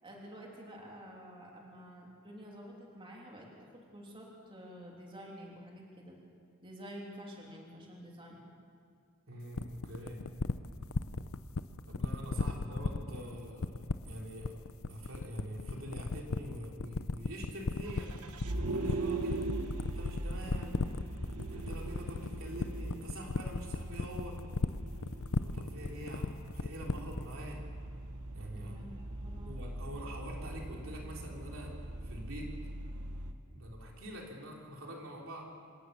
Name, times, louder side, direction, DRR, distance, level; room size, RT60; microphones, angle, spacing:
voice 1, 0.0-6.2 6.6-8.4 12.3-12.5 12.8-12.9 28.5-29.6, equal, 25° right, -2 dB, 3.1 m, -49 dB
voice 2, 9.3-10.2 11.9-18.1 18.5-19.4 19.9-20.8 21.5-24.4 25.4-27.6 28.3-28.8 29.4-31.7 32.0-32.5 33.5-35.5, equal, 60° right, -1 dB, 3.5 m, -45 dB
sound 1, 9.5-27.3, left 3 dB, 65° left, 0.7 m, -34 dB
Vehicle, 17.9-33.3, right 2 dB, 90° right, 1.4 m, -41 dB
26.5 x 17.5 x 6.9 m, 2.2 s
head